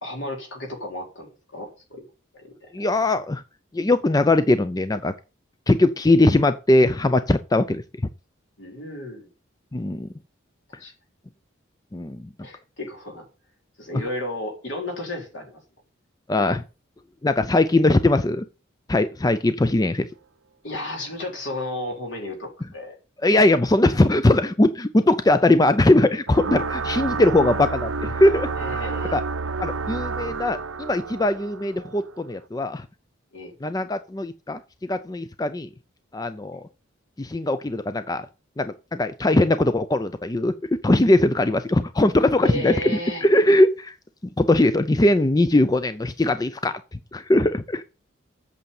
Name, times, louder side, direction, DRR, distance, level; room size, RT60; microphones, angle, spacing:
voice 1, 0.0-2.0 2.3-2.7 8.6-9.3 10.8-10.9 12.4-13.2 13.8-15.6 20.6-23.0 28.6-29.2 33.3-33.5 42.4-43.2, left 1 dB, 70° left, 4.0 m, -33 dB
voice 2, 2.7-3.4 3.7-5.1 5.7-7.8 9.7-10.1 11.9-12.3 16.3-16.6 17.2-18.5 18.9-20.1 23.2-28.5 28.8-28.9 29.1-29.2 29.6-32.8 33.6-35.7 36.1-36.6 37.2-38.3 38.6-42.7 43.2-44.0 44.4-46.7 47.1-47.8, left 2 dB, 20° left, 0.5 m, -20 dB
sound 1, 26.3-32.3, right 4 dB, 90° right, 0.8 m, -30 dB
8.4 x 6.5 x 7.1 m
head